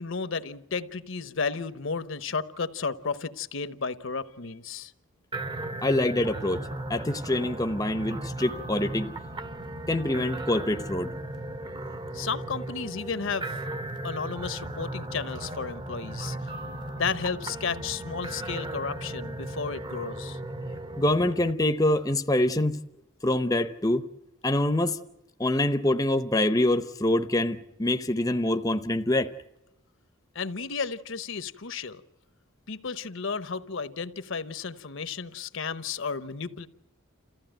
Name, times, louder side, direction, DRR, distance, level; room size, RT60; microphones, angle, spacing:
voice 1, 0.0-4.9 12.1-13.5 14.0-16.4 16.9-20.4 30.3-32.0 32.7-36.7, left 5 dB, 60° left, 13 dB, 0.9 m, -33 dB
sound 1, 5.3-21.5, right 1 dB, 20° right, 0.9 m, -36 dB
voice 2, 5.8-6.6 6.9-9.1 9.9-11.1 21.0-22.8 23.2-24.0 24.4-25.0 25.4-29.3, left 1 dB, 15° left, 8 dB, 0.7 m, -25 dB
29.0 x 15.0 x 9.1 m, 0.98 s
head